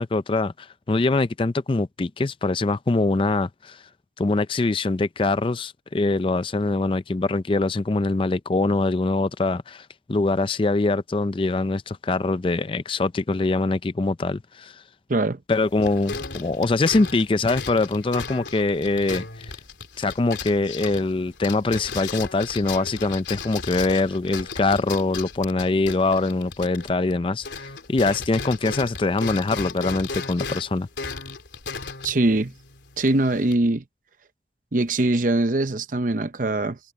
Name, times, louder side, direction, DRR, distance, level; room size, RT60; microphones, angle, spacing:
voice 1, 0.0-3.8 4.2-14.8 15.5-19.5 20.0-30.9, left 3 dB, 30° left, 0.4 m, -23 dB
sound 1, 15.5-27.2 27.4-33.5, left 4 dB, 90° left, 3.5 m, -36 dB
voice 2, 32.0-32.5 33.0-33.8 34.7-36.8, right 2 dB, 50° right, 0.8 m, -22 dB
head